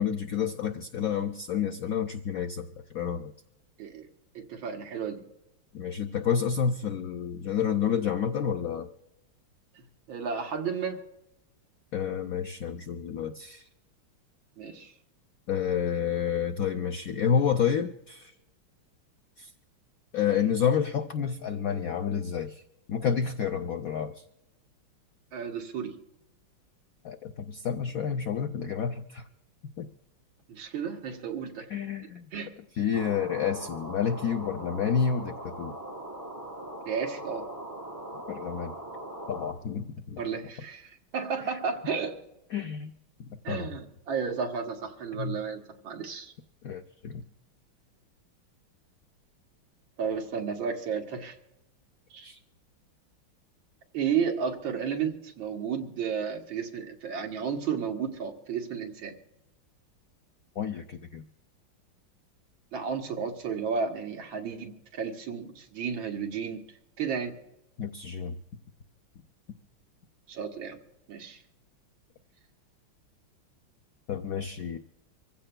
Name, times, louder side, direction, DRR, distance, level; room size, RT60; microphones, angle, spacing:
voice 1, 0.0-2.7 2.9-3.3 5.7-8.9 11.9-13.6 15.5-18.3 19.4-19.5 20.1-22.5 22.9-24.1 27.0-29.2 29.6-29.9 31.7-32.3 32.8-35.8 38.3-38.7 39.3-40.2 41.5-41.6 42.5-42.9 43.5-43.6 45.2-45.4 46.6-47.2 52.2-52.4 60.6-61.2 67.8-68.3 74.1-74.8, left 7 dB, 75° left, 6 dB, 0.8 m, -29 dB
voice 2, 4.4-5.2 9.8-11.0 14.6-14.9 25.3-26.0 30.5-31.7 32.3-32.5 36.9-37.5 40.1-42.2 43.4-46.3 50.0-51.4 52.1-52.3 53.9-59.2 62.7-66.6 67.0-67.4 70.3-70.8 71.1-71.4, right 6 dB, 75° right, 3 dB, 2.0 m, -33 dB
sound 1, 32.9-39.5, right 1 dB, 15° right, 3.4 m, -40 dB
25.5 x 15.5 x 2.2 m, 0.89 s
omnidirectional pair, 2.2 m